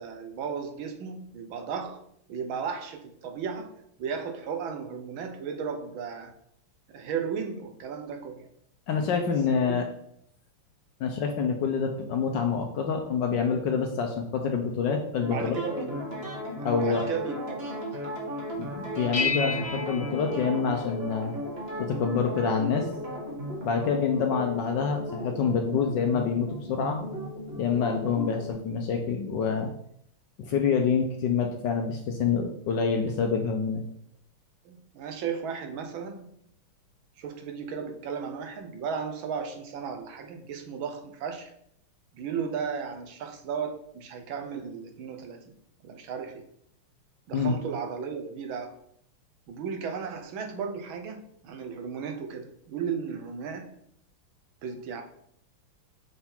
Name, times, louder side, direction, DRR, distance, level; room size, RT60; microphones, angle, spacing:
voice 1, 0.0-2.0 2.3-6.3 6.9-8.5 9.5-9.8 15.3-16.0 16.8-18.0 34.6-36.3 37.2-41.5 42.1-45.5 45.8-46.5 47.3-48.7 49.5-53.7 54.6-55.0, right 6 dB, 70° right, 4 dB, 1.5 m, -35 dB
voice 2, 8.9-9.8 11.0-15.5 16.6-17.0 18.6-21.3 21.8-22.9 23.6-27.1 27.6-29.7 30.4-33.8 47.3-47.6, left 6 dB, 70° left, 4 dB, 1.1 m, -27 dB
sound 1, 15.2-28.5, equal, 30° right, 1.4 m, -36 dB
sound 2, 19.1-21.3, left 4 dB, 45° left, 0.9 m, -32 dB
6.8 x 3.6 x 4.4 m, 0.70 s
omnidirectional pair, 2.4 m